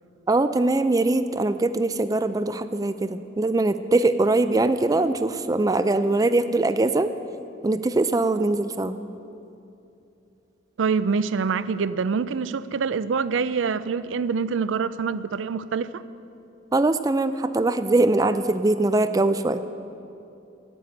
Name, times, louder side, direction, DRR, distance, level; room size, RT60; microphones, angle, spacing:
voice 1, 0.3-7.1 7.6-8.9 16.7-19.6, right 2 dB, 20° right, 11 dB, 0.4 m, -22 dB
voice 2, 10.8-16.0, right 5 dB, 80° right, 15 dB, 0.4 m, -25 dB
12.0 x 9.2 x 8.0 m, 2.7 s
head